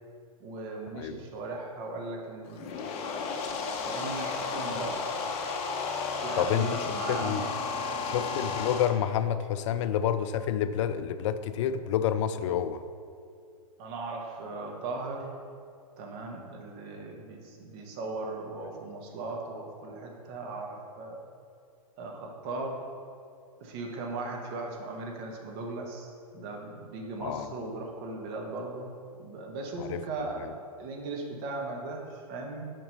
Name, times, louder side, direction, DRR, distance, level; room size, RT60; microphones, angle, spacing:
voice 1, 0.4-2.7 3.8-5.1 6.2-8.5 13.8-15.3 16.0-21.2 22.0-22.8 23.6-28.9 29.2-30.5 30.8-32.6, right 3 dB, 45° right, 1 dB, 1.3 m, -38 dB
sound 1, 2.5-8.9, left 4 dB, 30° left, 1.0 m, -33 dB
voice 2, 6.4-7.4 8.1-12.8 27.2-27.5 29.8-30.0 30.4-30.5, left 9 dB, 55° left, 12 dB, 0.4 m, -29 dB
5.9 x 5.1 x 5.3 m, 2.3 s
hypercardioid pair, 120°, 19 cm